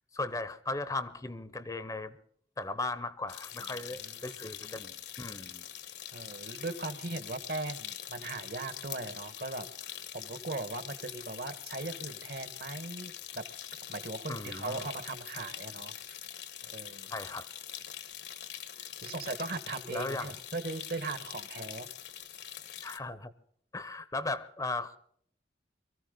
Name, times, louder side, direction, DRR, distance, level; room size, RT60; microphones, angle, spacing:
voice 1, 0.1-2.1 2.6-5.6 14.3-14.9 17.1-17.5 19.9-20.3 22.8-23.3 23.7-25.0, left 2 dB, 20° left, 14 dB, 0.8 m, -37 dB
sound 1, 3.3-23.0, left 10 dB, 70° left, 1.3 m, -44 dB
voice 2, 3.6-4.8 6.1-9.7 10.1-13.4 13.9-15.9 16.7-17.1 19.0-21.9, right 2 dB, 55° right, 12 dB, 1.4 m, -39 dB
23.5 x 14.5 x 3.9 m, 0.62 s
head